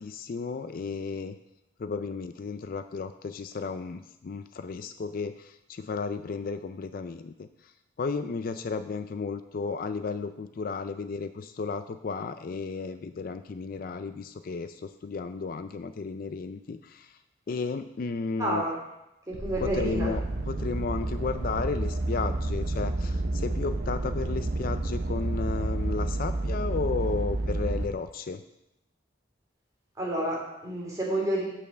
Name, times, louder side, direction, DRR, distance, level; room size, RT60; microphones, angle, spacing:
voice 1, 0.0-1.4 1.8-7.5 8.0-17.1 17.5-18.6 19.6-28.4, left 4 dB, 50° left, 10 dB, 0.4 m, -33 dB
voice 2, 18.4-18.8 19.3-20.1 30.0-31.4, right 1 dB, 20° right, -4 dB, 2.9 m, -29 dB
sound 1, 19.3-27.9, right 2 dB, 60° right, 0.8 m, -30 dB
8.6 x 5.4 x 6.4 m, 0.87 s
head